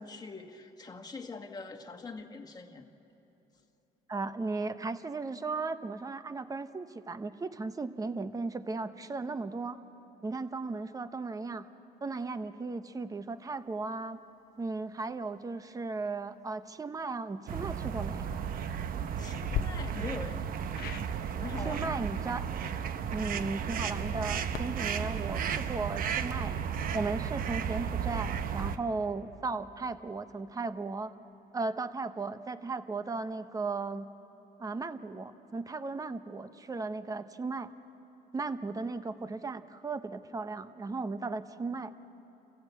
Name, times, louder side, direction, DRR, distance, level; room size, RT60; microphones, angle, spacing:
voice 1, 0.0-2.9 19.2-20.4 21.3-22.0, left 3 dB, 25° left, 4 dB, 1.5 m, -43 dB
voice 2, 4.1-9.8 10.2-11.6 12.0-14.2 14.6-18.3 21.6-22.4 23.1-26.5 26.9-31.1 31.5-34.1 34.6-37.7 38.3-41.9, right 3 dB, 20° right, 11 dB, 0.9 m, -36 dB
sound 1, 17.5-28.8, right 8 dB, 55° right, 0.9 m, -34 dB
sound 2, 18.1-18.4 19.4-19.6 20.7-21.1 23.8-26.6, left 9 dB, 65° left, 0.9 m, -40 dB
28.5 x 15.5 x 8.2 m, 3.0 s
cardioid pair, 110°, 17 cm